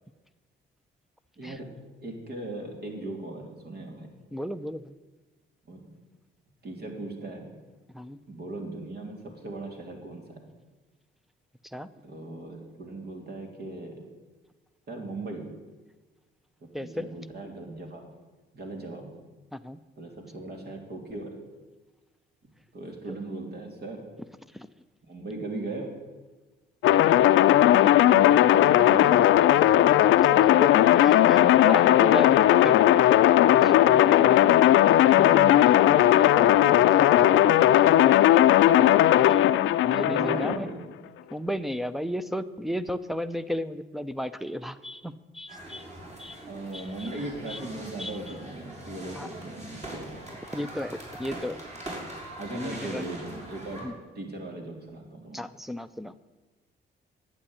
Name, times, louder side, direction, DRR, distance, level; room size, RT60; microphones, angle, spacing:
voice 1, 1.4-1.7 2.0-4.1 5.7-5.8 6.6-7.4 8.3-10.4 12.0-13.9 14.9-15.4 16.8-18.0 18.5-19.1 20.0-21.3 22.7-24.0 25.1-25.9 26.8-27.1 27.6-29.7 33.9-34.7 36.9-38.3 40.0-40.9 46.0-46.1 46.5-50.1 52.4-53.9 54.2-55.4, right 2 dB, 55° right, 2 dB, 3.8 m, -38 dB
voice 2, 4.3-4.9 7.9-8.2 11.7-11.9 16.7-17.0 19.5-19.8 30.3-30.7 31.0-32.8 33.6-33.7 35.2-35.7 36.2-36.3 39.2-39.4 39.8-40.7 41.3-45.8 46.2-46.4 46.7-46.8 47.5-47.6 48.0-48.1 49.2-49.3 50.5-51.6 52.5-53.0 53.8-53.9 55.3-56.1, equal, ahead, 13 dB, 0.7 m, -34 dB
sound 1, 26.8-40.6, left 12 dB, 80° left, 0.6 m, -18 dB
sound 2, 45.5-53.8, right 1 dB, 35° right, 5.6 m, -42 dB
11.5 x 8.9 x 9.9 m, 1.3 s
cardioid pair, 90°, 20 cm